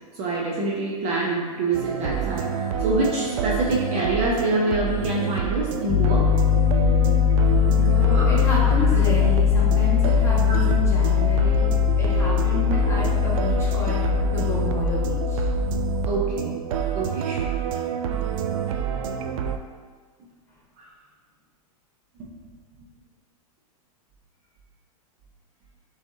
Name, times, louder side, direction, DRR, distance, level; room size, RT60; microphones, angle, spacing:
voice 1, 0.1-6.3 8.1-8.3 10.3-10.6 16.1-16.6 16.9-17.5 20.8-20.9 22.2-22.4, right 2 dB, 35° right, -4 dB, 0.8 m, -26 dB
sound 1, 1.7-19.6, right 8 dB, 60° right, 0.5 m, -28 dB
Piano, 5.9-16.1, left 9 dB, 40° left, 0.8 m, -21 dB
voice 2, 7.9-11.7 12.0-15.4 17.6-17.8, left 1 dB, 15° left, -7 dB, 1.4 m, -30 dB
6.0 x 3.3 x 2.7 m, 1.5 s
hypercardioid pair, 125°, 19 cm